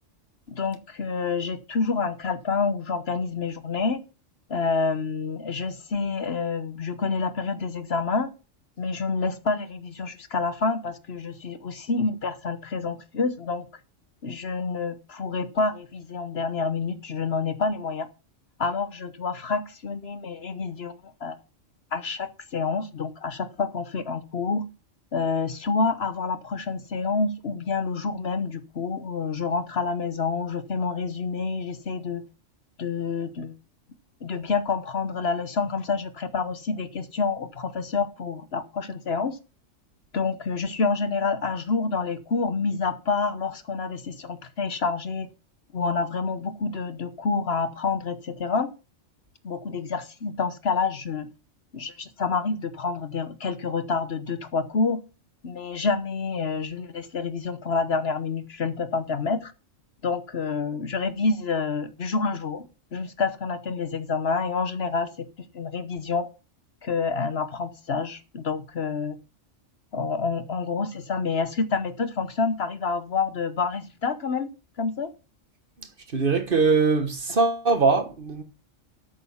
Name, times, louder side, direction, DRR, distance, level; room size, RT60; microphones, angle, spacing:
voice 1, 0.5-4.0 4.5-8.3 8.8-13.6 14.2-18.1 18.6-20.9 21.2-21.4 21.9-24.6 25.1-32.2 32.8-33.5 34.2-39.4 40.1-45.3 45.7-48.7 49.4-51.3 51.7-55.0 55.4-59.5 60.0-62.7 62.9-65.3 65.5-66.3 66.8-69.2 69.9-74.5 74.8-75.1, left 4 dB, 55° left, 1.2 m, -28 dB
voice 2, 76.1-78.4, right 4 dB, 45° right, 1.4 m, -22 dB
13.0 x 6.4 x 5.6 m
omnidirectional pair, 1.3 m